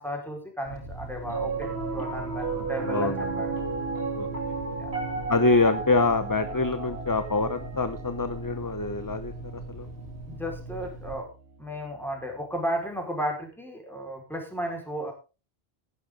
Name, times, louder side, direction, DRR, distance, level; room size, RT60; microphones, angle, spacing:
voice 1, 0.0-3.6 4.8-4.9 10.3-11.3 11.6-15.1, equal, ahead, 1 dB, 4.9 m, -34 dB
sound 1, 0.6-11.2, right 2 dB, 90° right, 7.2 m, -40 dB
Piano, 1.2-11.6, right 4 dB, 70° right, 3.8 m, -34 dB
voice 2, 2.9-3.3 4.2-4.3 5.3-9.3 9.7-9.9, left 3 dB, 20° left, 10 dB, 0.9 m, -25 dB
15.5 x 11.5 x 3.8 m, 0.32 s
omnidirectional pair, 1.1 m